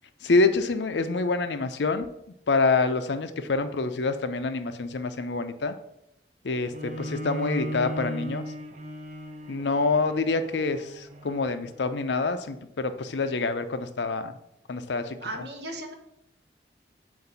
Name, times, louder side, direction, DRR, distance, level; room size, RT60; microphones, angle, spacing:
voice 1, 0.2-2.1 2.5-5.8 6.4-8.5 9.5-14.3 14.7-15.4, left 3 dB, 85° left, 10 dB, 0.6 m, -26 dB
Bowed string instrument, 6.7-11.9, right 1 dB, 40° right, 0.7 m, -37 dB
voice 2, 15.2-15.9, right 1 dB, 75° right, 4 dB, 1.1 m, -36 dB
7.7 x 2.6 x 5.5 m, 0.79 s
head